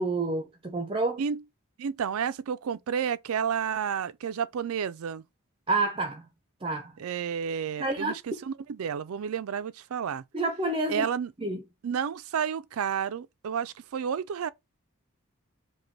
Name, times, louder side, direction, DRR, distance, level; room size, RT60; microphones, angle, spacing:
voice 1, 0.0-1.2 5.7-6.3 6.6-6.9 7.8-8.1 10.3-11.0 11.4-11.6, right 2 dB, 25° right, 0.6 m, -28 dB
voice 2, 1.8-5.2 7.0-10.2 10.9-11.3 11.8-14.5, right 7 dB, 70° right, 0.4 m, -31 dB
5.0 x 2.2 x 4.5 m
head